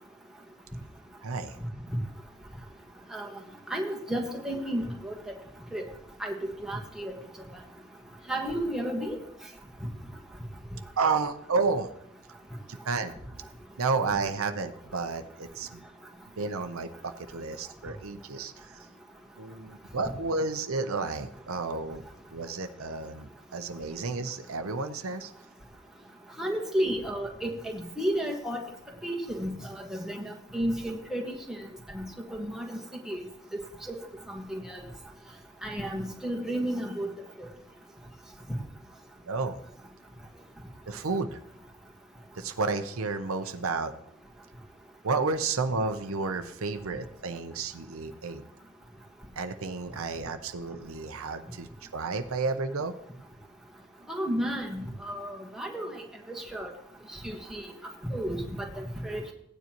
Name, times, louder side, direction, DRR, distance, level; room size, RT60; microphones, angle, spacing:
voice 1, 1.2-1.6 11.0-11.9 12.7-13.1 13.8-15.8 16.4-18.9 19.4-22.0 22.3-25.3 39.3-39.6 40.9-41.4 42.4-43.9 45.0-48.4 49.4-52.9, right 4 dB, 70° right, 7 dB, 0.7 m, -31 dB
voice 2, 3.7-5.1 5.7-5.8 6.2-7.1 8.3-9.2 26.4-28.6 29.0-31.6 31.9-32.1 32.3-32.8 33.1-33.2 33.9-34.0 34.3-34.8 35.6-37.1 37.4-37.5 54.1-56.0 56.5-56.7 57.2-57.7 58.1-59.2, right 1 dB, ahead, -1 dB, 1.4 m, -32 dB
16.5 x 9.5 x 3.0 m, 0.72 s
head